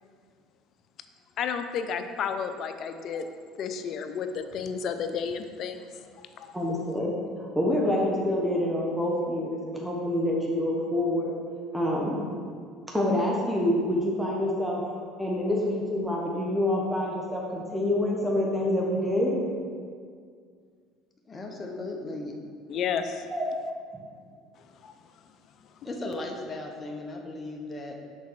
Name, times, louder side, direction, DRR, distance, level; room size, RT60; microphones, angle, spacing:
voice 1, 1.4-3.2 3.6-5.8 6.4-6.5 22.7-23.2 24.8-24.9, left 6 dB, 55° left, 8 dB, 0.6 m, -31 dB
voice 2, 6.5-11.3 11.7-12.2 12.9-14.8 15.2-19.3 23.3-23.5, left 1 dB, 5° right, -3 dB, 1.2 m, -27 dB
voice 3, 21.3-22.3 25.8-28.0, left 2 dB, 25° left, 1 dB, 1.0 m, -36 dB
6.2 x 4.1 x 6.2 m, 2.1 s
supercardioid pair, 100°, 0 cm